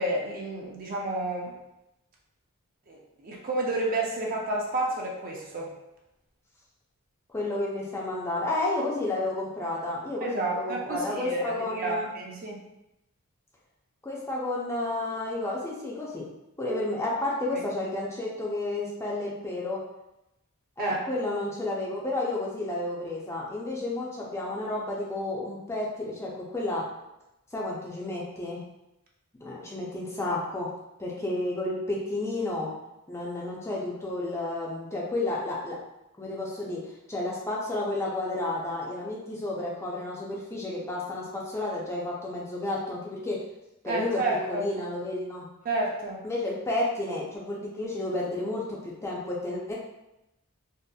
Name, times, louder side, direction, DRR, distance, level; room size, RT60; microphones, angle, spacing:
voice 1, 0.0-1.6 2.9-5.7 10.2-12.6 17.5-17.6 20.8-21.0 43.9-44.7 45.6-46.3, right 2 dB, 40° right, -2 dB, 0.5 m, -30 dB
voice 2, 7.3-12.1 14.0-16.3 16.6-19.8 20.8-26.9 27.5-28.6 29.4-30.7 31.0-32.7 33.1-35.8 36.2-43.4 43.8-44.2 44.5-45.5 46.2-49.7, left 2 dB, 10° left, -5 dB, 0.4 m, -31 dB
2.7 x 2.4 x 2.3 m, 0.89 s
head